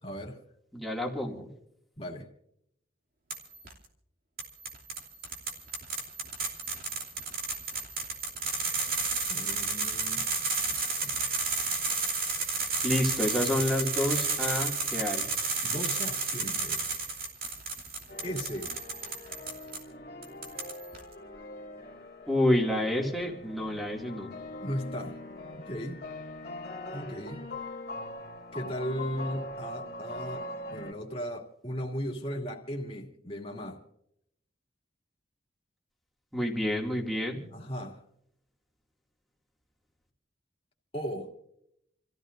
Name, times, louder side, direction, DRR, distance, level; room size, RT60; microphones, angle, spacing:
voice 1, 0.0-0.4 2.0-2.3 9.1-10.3 11.0-11.2 15.6-16.9 18.2-18.7 24.6-25.2 25.7-26.0 26.9-27.5 28.5-33.8 37.5-38.0 40.9-41.3, equal, 30° left, 2.6 m, -37 dB
voice 2, 0.7-1.5 12.8-15.3 22.3-24.3 36.3-37.4, left 1 dB, ahead, 2.4 m, -29 dB
sound 1, 3.3-3.7 4.4-19.8 20.2-21.0, right 4 dB, 50° right, 2.9 m, -32 dB
sound 2, 18.1-30.9, left 2 dB, 60° left, 2.1 m, -42 dB
29.5 x 15.0 x 2.6 m
head